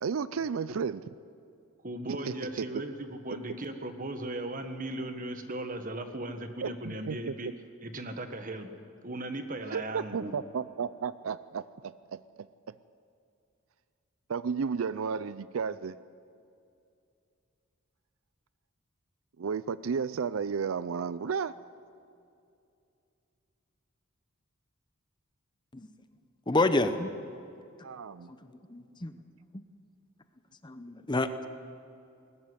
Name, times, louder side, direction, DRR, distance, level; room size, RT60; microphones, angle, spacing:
voice 1, 0.0-1.0 2.1-2.7 6.6-7.2 9.7-12.2 14.3-16.0 19.4-21.5 27.8-28.3, right 6 dB, 75° right, 16 dB, 0.5 m, -33 dB
voice 2, 1.8-7.5 7.8-8.7 9.0-10.3, right 1 dB, 40° right, 7 dB, 1.5 m, -37 dB
voice 3, 26.5-27.1 28.7-29.1 30.6-31.5, left 2 dB, 20° left, 10 dB, 0.8 m, -28 dB
19.5 x 14.5 x 9.7 m, 2.5 s
head